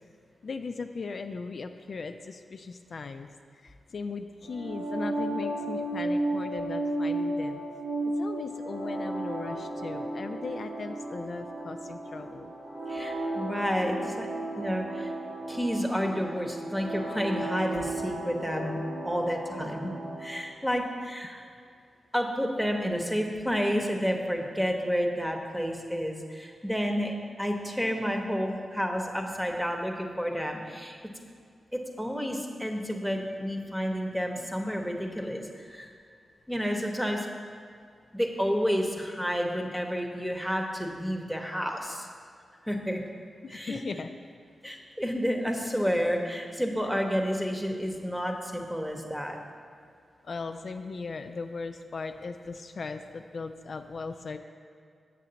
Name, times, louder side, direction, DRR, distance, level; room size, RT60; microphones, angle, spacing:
voice 1, 0.4-3.3 3.6-7.6 8.1-12.5 43.4-44.1 50.2-54.4, left 4 dB, 65° left, 7 dB, 0.3 m, -38 dB
sound 1, 4.5-20.4, right 1 dB, 90° right, 2.0 m, -34 dB
voice 2, 12.9-14.3 14.6-15.1 15.5-18.8 19.0-19.9 20.2-21.5 22.1-31.0 31.7-35.9 36.5-37.3 38.1-42.1 42.6-43.0 43.5-43.8 44.6-49.4, equal, 5° right, 2 dB, 1.0 m, -30 dB
7.3 x 6.7 x 4.0 m, 2.2 s
cardioid pair, 60°, 0 cm